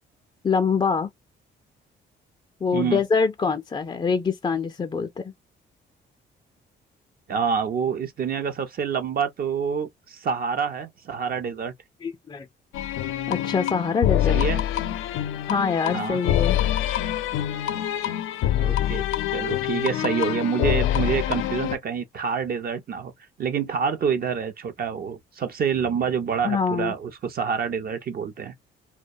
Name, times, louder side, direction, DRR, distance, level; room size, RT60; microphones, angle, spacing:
voice 1, 0.4-1.1 2.6-5.3 12.0-12.5 13.3-14.4 15.5-16.6 26.4-27.0, left 5 dB, 25° left, 0.4 m, -24 dB
voice 2, 7.3-11.7 14.3-14.6 15.9-16.2 18.6-19.0 19.3-23.1 23.4-28.5, right 6 dB, 50° right, 0.6 m, -27 dB
sound 1, 12.7-21.8, left 12 dB, 85° left, 0.4 m, -25 dB
2.3 x 2.1 x 2.6 m
cardioid pair, 90°, 20 cm